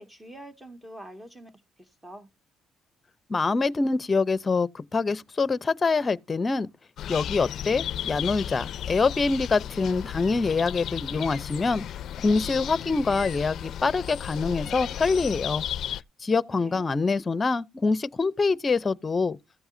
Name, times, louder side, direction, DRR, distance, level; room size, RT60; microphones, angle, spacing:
voice 1, 0.0-1.5 1.8-2.3 16.5-16.9, right 1 dB, 15° right, 2.2 m, -45 dB
voice 2, 3.3-6.7 7.1-11.8 12.2-15.6 16.2-19.4, left 4 dB, 30° left, 0.7 m, -25 dB
sound 1, 7.0-16.0, left 10 dB, 70° left, 0.4 m, -34 dB
15.0 x 7.9 x 2.7 m
cardioid pair, 90°, 0 cm